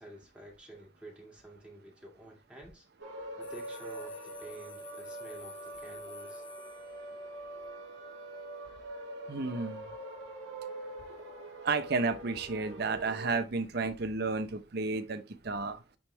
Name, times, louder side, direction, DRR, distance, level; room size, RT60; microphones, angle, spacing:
voice 1, 0.0-2.9 3.4-6.4, right 1 dB, 5° right, 1.9 m, -50 dB
sound 1, 3.0-13.4, right 2 dB, 80° right, 2.2 m, -44 dB
sound 2, 3.4-7.4, left 6 dB, 50° left, 1.2 m, -52 dB
voice 2, 9.3-9.8 11.6-15.8, right 3 dB, 60° right, 0.8 m, -32 dB
8.8 x 3.5 x 3.3 m
head